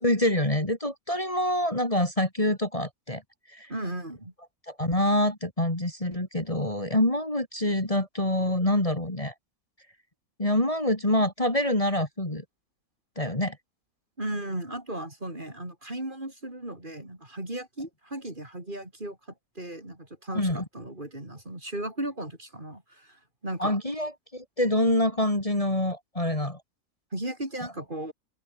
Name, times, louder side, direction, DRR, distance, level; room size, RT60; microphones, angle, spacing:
voice 1, 0.0-3.2 3.5-3.7 4.7-9.3 10.4-12.4 13.2-13.6 20.4-20.6 23.6-26.6, left 1 dB, 20° left, 3.5 m, -26 dB
voice 2, 3.7-4.3 14.2-19.2 19.6-23.8 27.1-28.1, right 1 dB, 35° right, 5.4 m, -36 dB
open air
omnidirectional pair, 1.5 m